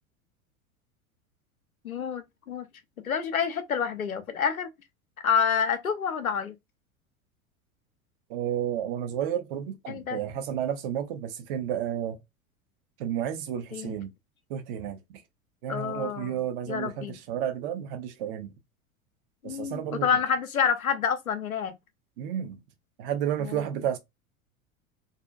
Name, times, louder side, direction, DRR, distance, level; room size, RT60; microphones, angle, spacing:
voice 1, 1.8-2.7 3.0-4.7 5.2-6.6 9.9-10.2 13.7-14.0 15.7-17.1 19.4-21.7 23.4-23.6, left 7 dB, 80° left, 0.6 m, -28 dB
voice 2, 8.3-12.2 13.0-14.1 14.5-15.2 15.6-18.5 19.4-20.1 22.2-22.6 23.0-24.0, right 10 dB, 40° right, 0.7 m, -31 dB
2.6 x 2.4 x 2.3 m
figure-of-eight pair, 85°, 41 cm